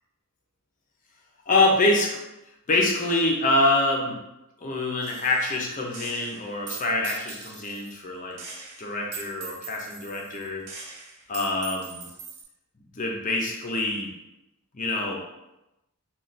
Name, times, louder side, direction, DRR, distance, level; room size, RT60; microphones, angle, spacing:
voice 1, 1.5-2.2 2.7-4.2 4.6-8.4 8.8-10.7 11.3-12.1 13.0-14.1 14.7-15.2, left 2 dB, 35° left, -1 dB, 0.6 m, -25 dB
Gunshot gunfire, 5.0-5.6 5.9-7.9 8.4-12.4, right 5 dB, 75° right, 0.7 m, -41 dB
3.2 x 2.3 x 4.0 m, 0.93 s
head